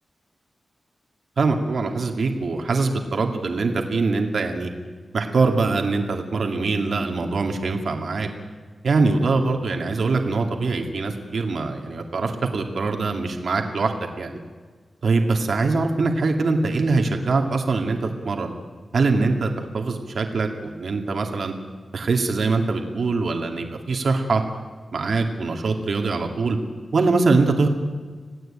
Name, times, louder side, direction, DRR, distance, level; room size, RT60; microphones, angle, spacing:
voice 1, 1.4-4.7 5.1-8.3 8.8-14.4 15.0-18.5 18.9-21.5 21.9-24.4 24.9-26.6 26.9-27.7, right 3 dB, 65° right, 3 dB, 2.5 m, -23 dB
27.0 x 17.5 x 8.9 m, 1.5 s
wide cardioid pair, 145°, 0 cm